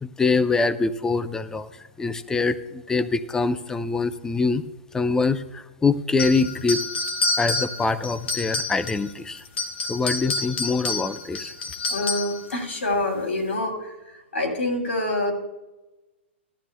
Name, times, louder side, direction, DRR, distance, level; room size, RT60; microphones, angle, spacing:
voice 1, 0.0-4.6 4.9-6.8 7.4-9.4 9.9-11.5, left 4 dB, 10° left, 12 dB, 0.6 m, -24 dB
sound 1, 6.2-9.1 9.5-12.4, left 3 dB, 65° left, 1.5 m, -28 dB
voice 2, 11.9-15.3, left 1 dB, 80° left, 2 dB, 3.1 m, -26 dB
16.0 x 12.0 x 2.3 m, 1.0 s
hypercardioid pair, 120°, 7 cm